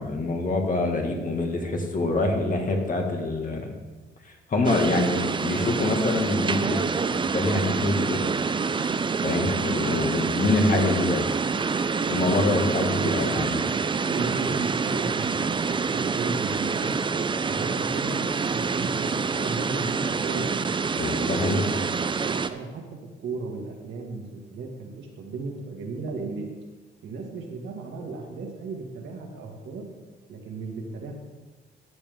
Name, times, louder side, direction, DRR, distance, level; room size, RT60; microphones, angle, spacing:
voice 1, 0.0-3.7 4.5-6.8 7.1-8.2 9.2-11.3 12.1-13.6 21.0-21.7, left 2 dB, 45° left, 2 dB, 1.9 m, -25 dB
sound 1, 4.6-22.5, right 5 dB, 25° right, 0.5 m, -27 dB
voice 2, 12.7-17.0 17.4-20.7 21.1-21.6 22.0-26.5 27.0-29.8 30.3-31.1, right 3 dB, 70° right, 0 dB, 2.0 m, -35 dB
13.0 x 7.3 x 3.6 m, 1.3 s
cardioid pair, 90°, 20 cm